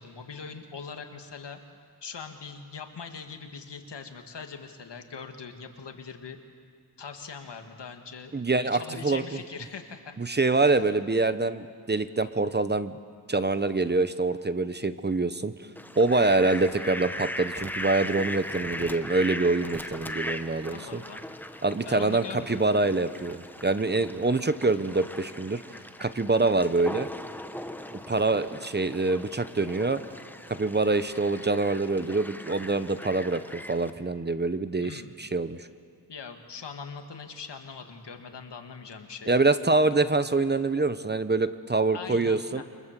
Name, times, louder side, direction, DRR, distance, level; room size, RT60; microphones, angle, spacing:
voice 1, 0.0-1.6 2.0-6.4 7.0-10.2 10.6-10.7 20.7-21.2 21.8-22.7 28.1-28.4 34.8-35.1 36.1-39.3 41.9-42.6, left 5 dB, 80° left, 5 dB, 2.2 m, -42 dB
voice 2, 8.3-9.2 10.2-13.0 13.3-15.5 16.0-21.0 21.6-25.6 26.0-27.1 28.1-30.0 30.6-35.7 39.3-42.6, right 3 dB, 25° right, 12 dB, 0.9 m, -25 dB
Fowl, 15.8-33.9, left 1 dB, 5° left, 1.1 m, -39 dB
28.5 x 24.5 x 7.6 m, 2.1 s
wide cardioid pair, 100°, 41 cm